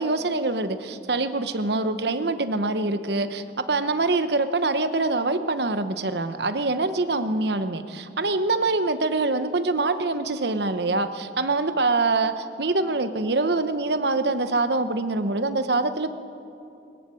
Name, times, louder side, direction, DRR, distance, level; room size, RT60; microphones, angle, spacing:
voice 1, 0.0-16.1, right 3 dB, 65° right, 10 dB, 1.0 m, -24 dB
21.0 x 19.5 x 7.7 m, 2.7 s
head